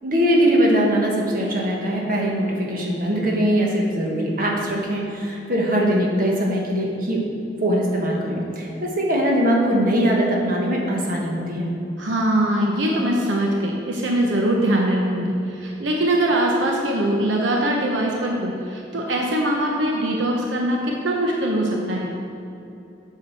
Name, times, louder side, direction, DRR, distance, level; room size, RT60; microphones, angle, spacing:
voice 1, 0.0-7.2 7.6-11.7, equal, 50° right, -2 dB, 1.4 m, -21 dB
voice 2, 12.0-20.8 21.0-22.1, right 1 dB, 80° right, -1 dB, 0.9 m, -22 dB
8.3 x 4.9 x 6.3 m, 2.7 s
head